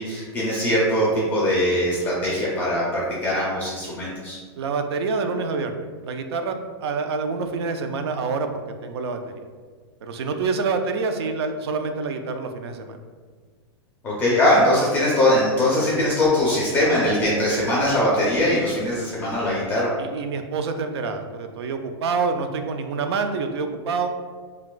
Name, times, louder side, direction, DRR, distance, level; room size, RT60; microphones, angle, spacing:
voice 1, 0.0-4.4 14.0-19.9, left 1 dB, 10° left, -6 dB, 0.3 m, -21 dB
voice 2, 4.6-9.4 10.0-13.0 20.0-24.1, right 4 dB, 70° right, 7 dB, 0.4 m, -27 dB
2.5 x 2.3 x 3.7 m, 1.5 s
supercardioid pair, 170°, 14 cm